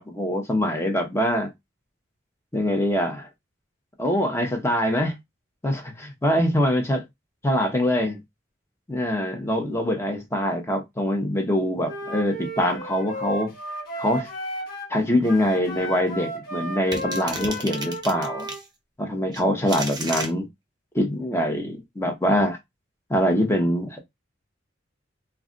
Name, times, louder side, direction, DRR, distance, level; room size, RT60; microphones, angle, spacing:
voice 1, 0.0-1.5 2.5-3.3 4.0-5.1 5.6-7.0 7.4-8.2 8.9-13.5 14.0-14.3 14.9-18.5 19.0-20.5 20.9-22.6 23.1-24.0, equal, 15° left, 0.7 m, -24 dB
Wind instrument woodwind instrument, 11.8-14.9 15.2-18.6, equal, 55° left, 1.1 m, -34 dB
sound 1, 16.9-18.6 19.3-20.3, right 2 dB, 20° right, 0.7 m, -33 dB
2.3 x 2.2 x 3.7 m
head